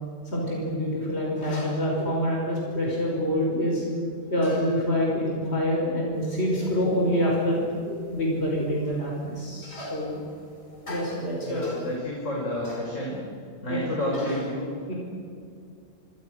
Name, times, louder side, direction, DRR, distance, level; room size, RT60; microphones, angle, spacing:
voice 1, 0.2-3.8 4.3-10.3 10.9-11.9 12.6-12.9 13.7-13.8 14.1-14.5 14.9-15.0, equal, 60° left, -2 dB, 5.7 m, -26 dB
sound 1, 6.1-12.0, equal, 25° left, 6.6 m, -43 dB
voice 2, 11.4-13.2 13.6-14.9, left 1 dB, 90° left, -3 dB, 5.7 m, -30 dB
27.5 x 26.0 x 6.6 m, 2.3 s
omnidirectional pair, 1.3 m